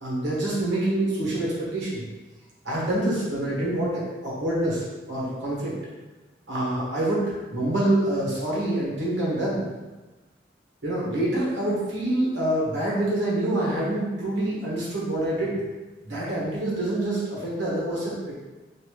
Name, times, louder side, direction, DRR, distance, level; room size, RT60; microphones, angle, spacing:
voice 1, 0.0-2.0 2.6-5.8 6.5-9.6 10.8-15.6 16.0-18.3, right 1 dB, 80° right, -6 dB, 1.2 m, -26 dB
3.3 x 2.6 x 3.1 m, 1.2 s
head